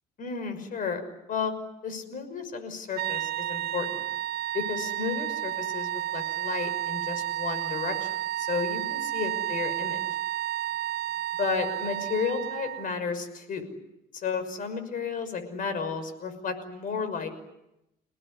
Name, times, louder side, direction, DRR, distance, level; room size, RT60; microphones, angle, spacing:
voice 1, 0.2-1.0 1.3-1.5 1.8-4.0 4.5-8.1 8.4-10.0 11.4-13.7 14.1-17.3, left 5 dB, 55° left, 10 dB, 6.0 m, -32 dB
sound 1, 2.9-12.9, right 13 dB, 65° right, 1.0 m, -31 dB
29.5 x 19.0 x 9.9 m, 0.88 s
cardioid pair, 110°, 17 cm